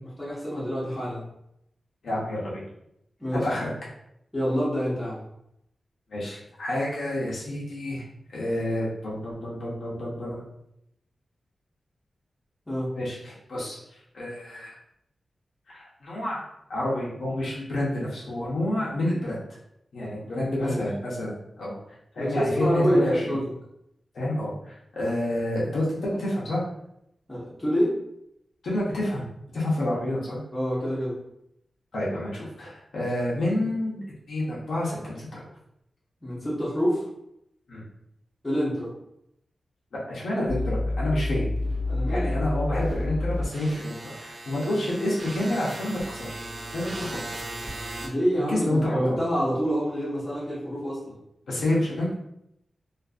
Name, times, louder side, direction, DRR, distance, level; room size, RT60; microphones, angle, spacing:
voice 1, 0.2-1.3 3.2-3.5 4.3-5.2 12.7-13.0 20.2-20.8 22.2-23.5 27.3-28.0 30.5-31.2 36.2-37.0 38.4-38.9 41.9-42.5 48.0-51.1, equal, 10° left, -10 dB, 0.7 m, -27 dB
voice 2, 2.0-2.6 3.3-3.7 6.1-8.0 8.3-10.4 13.0-13.8 14.1-14.7 15.7-16.4 16.7-19.4 19.9-21.8 22.1-23.3 24.1-26.6 28.6-29.3 29.5-30.4 31.9-34.0 34.3-35.4 37.7-37.8 40.1-41.5 42.1-46.5 46.7-47.2 48.4-49.2 51.5-52.1, left 1 dB, 80° left, -6 dB, 0.8 m, -29 dB
sound 1, 40.4-48.1, left 1 dB, 35° right, 0.4 m, -31 dB
2.5 x 2.5 x 2.4 m, 0.78 s
wide cardioid pair, 155°, 0 cm